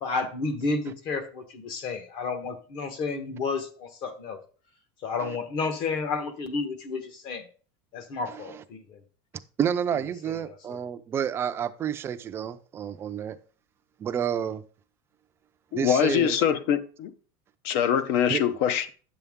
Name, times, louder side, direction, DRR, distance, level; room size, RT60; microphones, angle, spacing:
voice 1, 0.0-4.4 5.0-7.5 7.9-9.0 10.3-10.4 10.7-10.8, left 4 dB, 45° left, 1.1 m, -31 dB
voice 2, 8.3-8.6 9.6-13.4 14.0-14.6 15.7-16.4 18.3-18.4, right 8 dB, 20° right, 0.4 m, -30 dB
voice 3, 15.7-17.1 17.6-18.9, left 9 dB, 60° left, 0.7 m, -24 dB
10.0 x 6.8 x 3.6 m
cardioid pair, 175°, 12 cm